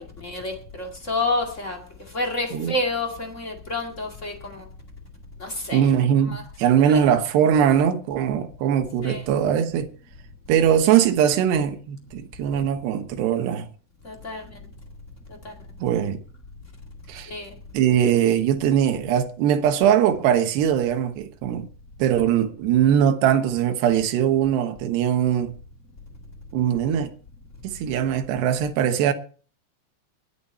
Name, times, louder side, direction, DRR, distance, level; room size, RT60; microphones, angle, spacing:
voice 1, 0.0-1.8 2.1-4.6 5.4-5.8 6.3-6.4 9.0-9.2 14.0-14.4 15.4-15.5 17.3-17.5, left 2 dB, 35° left, 1.1 m, -29 dB
voice 2, 5.7-9.9 10.5-13.7 15.8-16.2 17.1-17.3 17.7-21.7 22.0-25.5 26.5-27.1 27.6-29.1, right 9 dB, 75° right, 3.3 m, -21 dB
22.0 x 9.0 x 4.3 m
omnidirectional pair, 5.0 m